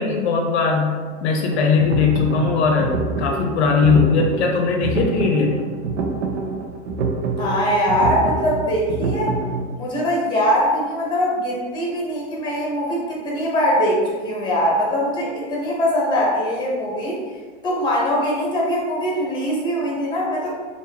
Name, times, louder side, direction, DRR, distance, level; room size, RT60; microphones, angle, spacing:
voice 1, 0.0-5.6, left 5 dB, 70° left, 2 dB, 0.6 m, -19 dB
sound 1, 1.5-9.6, right 3 dB, 75° right, 0.7 m, -26 dB
voice 2, 7.4-9.3 9.7-17.2 17.6-20.5, equal, 15° left, -4 dB, 1.0 m, -22 dB
3.6 x 2.5 x 2.8 m, 1.5 s
supercardioid pair, 140°, 35 cm